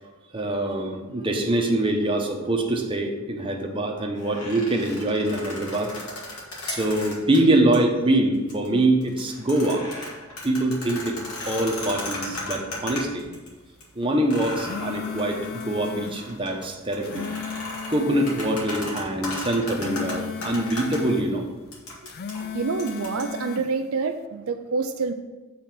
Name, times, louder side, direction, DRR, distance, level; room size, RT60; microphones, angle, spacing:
voice 1, 0.3-5.9 6.7-9.9 10.4-11.2 11.5-13.3 14.0-17.3 17.9-21.5, right 1 dB, 25° right, 1 dB, 0.9 m, -24 dB
sound 1, 4.2-7.4 7.7-7.8 8.3-8.7 9.0-13.5 13.8-13.9 14.3-21.0 21.7-23.2, left 2 dB, 85° left, 2.1 m, -36 dB
sound 2, 14.4-16.2 16.8-18.6 19.5-21.3 21.9-23.7, left 6 dB, 45° left, 0.4 m, -35 dB
voice 2, 22.5-25.1, right 4 dB, 70° right, 7 dB, 0.4 m, -27 dB
7.5 x 4.0 x 6.0 m, 1.2 s
head